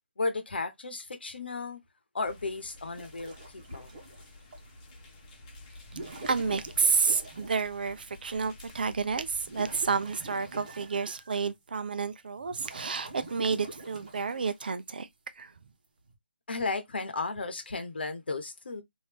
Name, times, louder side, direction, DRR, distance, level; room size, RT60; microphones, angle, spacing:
voice 1, 0.2-1.8 2.1-3.3 3.7-3.9 16.5-18.8, left 3 dB, 75° left, 0.9 m, -34 dB
sound 1, 2.2-9.9, left 2 dB, 30° left, 1.0 m, -51 dB
sound 2, 2.9-4.7 5.8-7.9 8.5-8.6 9.1-11.6 12.0-14.7 15.8-16.1, right 2 dB, 40° right, 1.1 m, -46 dB
voice 2, 6.3-15.1 15.4-15.5, right 5 dB, 60° right, 0.5 m, -30 dB
3.1 x 2.6 x 3.3 m
hypercardioid pair, 160°, 6 cm